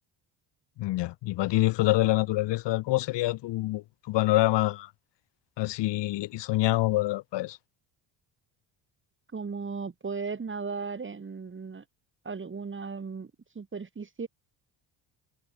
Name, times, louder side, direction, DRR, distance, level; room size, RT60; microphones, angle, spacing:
voice 1, 0.8-4.9 5.6-7.6, left 17 dB, 65° left, 0.8 m, -26 dB
voice 2, 9.3-11.8 12.2-14.3, right 5 dB, 25° right, 2.5 m, -36 dB
cardioid pair, 95°, 47 cm